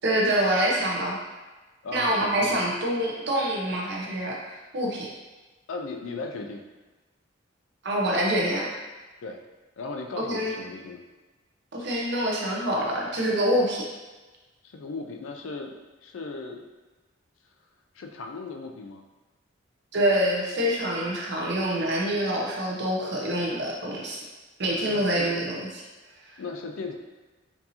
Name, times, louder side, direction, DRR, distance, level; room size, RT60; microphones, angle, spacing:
voice 1, 0.0-1.2 1.9-4.4 4.7-5.1 7.8-8.7 10.3-10.5 11.7-13.9 19.9-24.2 24.6-25.7 26.3-26.4, right 1 dB, 55° right, -3 dB, 0.8 m, -26 dB
voice 2, 1.8-2.6 5.7-6.6 9.2-9.4 9.8-11.0 14.6-16.6 17.9-19.0 24.8-25.4 26.4-26.9, left 3 dB, 75° left, 3 dB, 0.4 m, -37 dB
4.5 x 2.7 x 2.8 m, 1.2 s
head